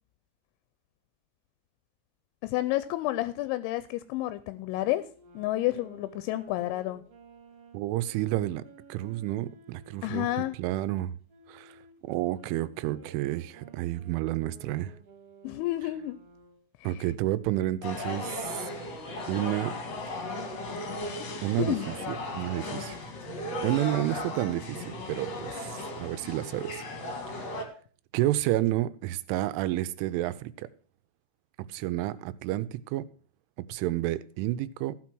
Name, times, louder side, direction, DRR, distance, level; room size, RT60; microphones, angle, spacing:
voice 1, 2.4-5.1 5.4-7.0 10.0-10.6 15.4-16.2 16.8-16.9 21.2-21.3 21.6-21.9 23.9-24.1, left 16 dB, 85° left, 2.9 m, -30 dB
Wind instrument woodwind instrument, 4.7-10.5 11.3-16.7, right 2 dB, 45° right, 2.2 m, -54 dB
voice 2, 7.7-8.6 8.9-10.3 10.6-11.2 11.5-11.8 12.0-15.0 16.8-18.7 19.3-19.8 21.4-23.0 23.6-26.8 27.3-27.6 28.1-30.7 31.7-33.0 33.6-34.9, right 15 dB, 85° right, 3.1 m, -30 dB
sound 1, 17.8-27.6, left 2 dB, 50° left, 2.1 m, -36 dB
sound 2, 20.9-26.1, right 4 dB, 60° right, 1.2 m, -52 dB
15.0 x 5.9 x 6.1 m
omnidirectional pair, 5.5 m